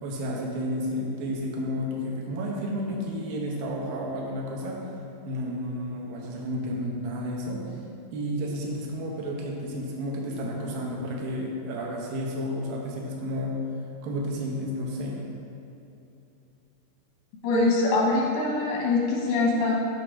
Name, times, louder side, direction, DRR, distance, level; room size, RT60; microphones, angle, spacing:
voice 1, 0.0-4.8 5.2-7.6 8.1-13.5 14.0-15.3, equal, 80° right, -2 dB, 2.6 m, -31 dB
voice 2, 17.4-19.7, left 3 dB, 90° left, -3 dB, 2.8 m, -23 dB
7.4 x 3.3 x 6.0 m, 2.8 s
omnidirectional pair, 4.1 m